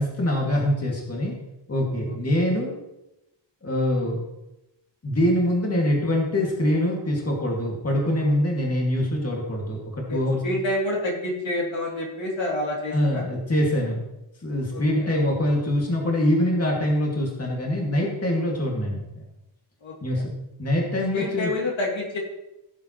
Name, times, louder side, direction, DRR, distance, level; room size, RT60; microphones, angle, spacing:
voice 1, 0.0-1.3 1.7-2.7 3.6-4.2 5.0-10.4 12.9-14.0 14.4-19.2 20.0-20.3 20.6-21.5, left 1 dB, 30° left, -2 dB, 2.2 m, -24 dB
voice 2, 10.4-13.2 14.7-15.1 19.8-20.2 21.1-22.2, left 1 dB, 75° left, -3 dB, 2.9 m, -28 dB
16.0 x 7.6 x 3.1 m, 0.93 s
wide cardioid pair, 135°, 46 cm